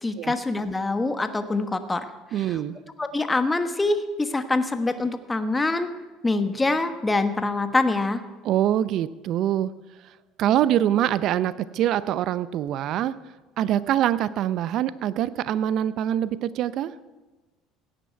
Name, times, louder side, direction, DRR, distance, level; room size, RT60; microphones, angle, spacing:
voice 1, 0.0-2.1 2.4-2.6 3.0-5.9 6.2-8.2, left 2 dB, 15° left, 9 dB, 1.2 m, -25 dB
voice 2, 2.3-2.8 8.4-9.7 10.4-13.2 13.6-16.9, right 11 dB, 60° right, 16 dB, 0.6 m, -24 dB
17.0 x 9.4 x 4.6 m, 1.2 s
hypercardioid pair, 70°, 0 cm